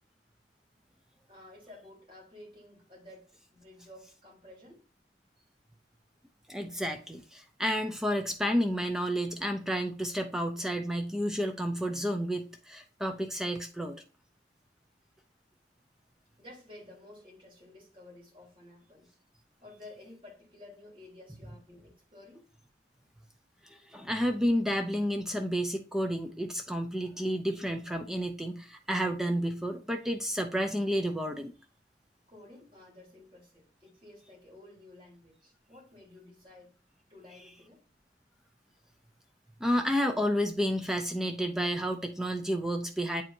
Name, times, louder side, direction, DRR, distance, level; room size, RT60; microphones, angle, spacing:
voice 1, 1.3-4.8 16.4-19.2 19.6-22.5 32.3-36.7 37.1-37.8, left 2 dB, 30° right, 3.3 m, -53 dB
voice 2, 6.5-14.0 23.6-31.5 39.6-43.2, equal, 5° right, 0.5 m, -31 dB
8.6 x 4.6 x 2.6 m
head